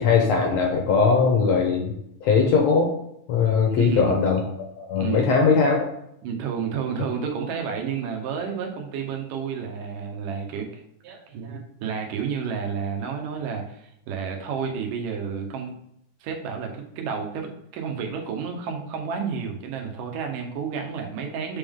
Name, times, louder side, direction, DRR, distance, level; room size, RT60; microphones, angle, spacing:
voice 1, 0.0-1.9 2.2-3.0 3.3-4.4 4.8-5.9, left 5 dB, 70° left, 1 dB, 1.7 m, -20 dB
voice 2, 3.7-4.1 5.0-5.3 6.2-15.7 16.2-21.6, right 6 dB, 85° right, 2 dB, 2.5 m, -31 dB
7.9 x 3.6 x 3.6 m, 0.76 s
omnidirectional pair, 3.7 m